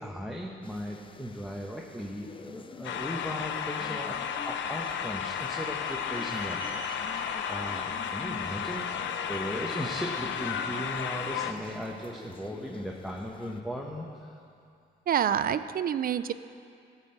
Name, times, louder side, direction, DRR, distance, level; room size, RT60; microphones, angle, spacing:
voice 1, 0.0-4.2 4.5-8.8 9.3-14.4, equal, ahead, -1 dB, 1.0 m, -37 dB
sound 1, 0.6-13.6, left 5 dB, 25° left, 0.4 m, -49 dB
sound 2, 2.8-11.5, left 7 dB, 70° left, 0.7 m, -33 dB
sound 3, 4.4-9.4, right 8 dB, 85° right, 1.1 m, -50 dB
voice 2, 15.1-16.3, right 9 dB, 45° right, 13 dB, 0.4 m, -27 dB
14.0 x 5.6 x 7.7 m, 2.4 s
cardioid pair, 90°, 20 cm